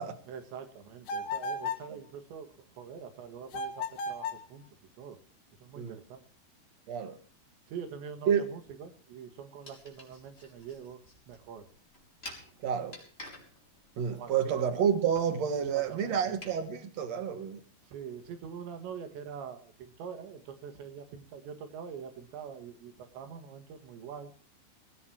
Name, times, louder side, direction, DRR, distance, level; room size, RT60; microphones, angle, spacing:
voice 1, 0.3-4.7 5.0-5.2 5.6-6.2 7.7-11.0 11.3-11.7 14.1-14.8 15.5-16.4 17.8-24.3, right 7 dB, 85° right, 4.3 m, -44 dB
sound 1, 1.1-1.9 3.5-4.5, left 3 dB, 60° left, 2.6 m, -35 dB
voice 2, 6.9-7.2 8.3-8.4 12.6-13.0 14.0-17.6, right 8 dB, 55° right, 2.2 m, -29 dB
sound 2, 9.6-16.6, left 1 dB, 15° left, 5.0 m, -51 dB
22.0 x 18.0 x 3.0 m
omnidirectional pair, 5.0 m